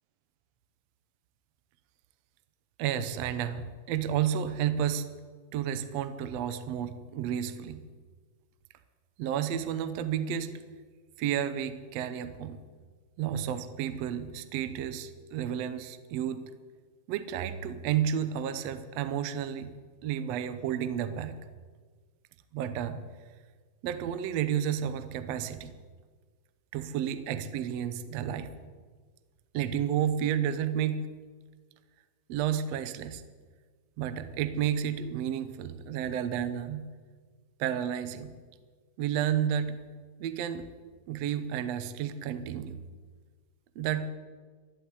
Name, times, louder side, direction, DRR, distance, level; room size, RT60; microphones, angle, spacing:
voice 1, 2.8-5.1 5.5-7.8 9.2-10.6 11.2-12.6 13.2-16.5 17.1-19.7 20.0-21.4 22.5-23.0 23.8-25.7 26.7-28.5 29.5-31.0 32.3-33.2 34.0-36.9 37.6-38.3 39.0-39.8 40.2-40.7 41.1-42.8 43.7-44.1, right 9 dB, 75° right, 11 dB, 1.5 m, -31 dB
14.0 x 11.5 x 8.2 m, 1.5 s
omnidirectional pair, 4.1 m